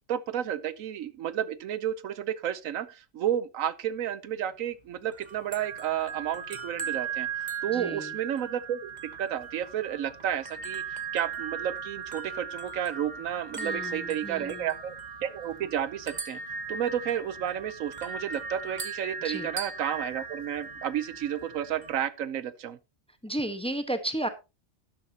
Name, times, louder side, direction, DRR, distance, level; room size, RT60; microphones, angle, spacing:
voice 1, 0.1-7.3 7.6-8.9 9.2-10.8 11.1-15.0 15.2-16.4 16.7-22.8, right 10 dB, 85° right, 1.2 m, -31 dB
sound 1, 5.1-22.0, right 5 dB, 35° right, 1.3 m, -38 dB
voice 2, 7.7-8.1 13.6-14.7 19.2-19.5 23.2-24.3, right 1 dB, 5° left, 1.1 m, -33 dB
12.5 x 10.5 x 2.9 m
omnidirectional pair, 1.4 m